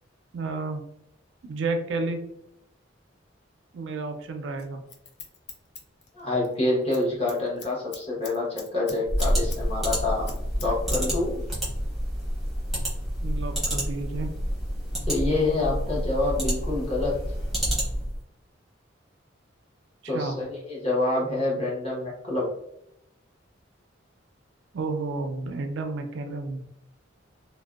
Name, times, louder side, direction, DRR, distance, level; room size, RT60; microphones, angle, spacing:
voice 1, 0.3-0.8 1.5-2.2 3.7-4.8 13.2-14.3 20.0-20.4 24.7-26.7, right 3 dB, 70° right, 5 dB, 0.4 m, -31 dB
Scissors, 4.6-6.5 6.8-7.0 7.3-9.6 9.9-11.0 11.3-11.4, left 5 dB, 60° left, 0.5 m, -43 dB
voice 2, 6.1-10.3 10.6-11.5 15.1-17.2 20.0-22.5, left 2 dB, 30° left, -5 dB, 0.9 m, -27 dB
sound 1, 9.0-18.2, equal, ahead, 0.8 m, -28 dB
2.5 x 2.1 x 2.3 m, 0.80 s
head